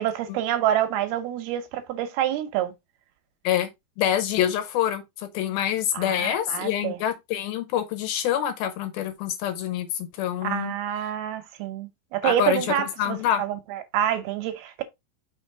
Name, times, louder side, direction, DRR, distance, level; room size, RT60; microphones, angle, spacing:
voice 1, 0.0-2.7 5.9-7.0 10.4-14.8, right 11 dB, 75° right, 2.6 m, -27 dB
voice 2, 4.0-10.7 12.2-13.4, left 10 dB, 75° left, 2.6 m, -26 dB
6.0 x 3.6 x 4.6 m
omnidirectional pair, 4.7 m